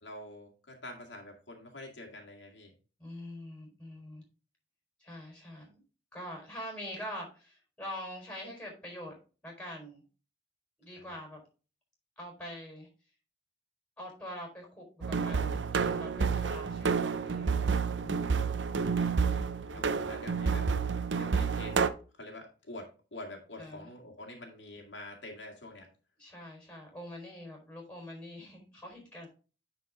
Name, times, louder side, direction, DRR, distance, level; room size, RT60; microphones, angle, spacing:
voice 1, 0.0-2.7 11.0-11.1 19.0-20.7 21.1-25.9, left 1 dB, 80° left, 1 dB, 2.0 m, -47 dB
voice 2, 3.0-4.2 5.0-5.8 6.1-9.1 9.4-10.0 10.8-11.4 12.2-12.9 14.0-18.4 19.7-20.2 23.6-23.9 26.2-29.3, equal, 5° left, 1 dB, 4.3 m, -44 dB
sound 1, 15.0-21.9, right 5 dB, 75° right, 0.6 m, -29 dB
10.0 x 4.6 x 3.7 m, 0.35 s
head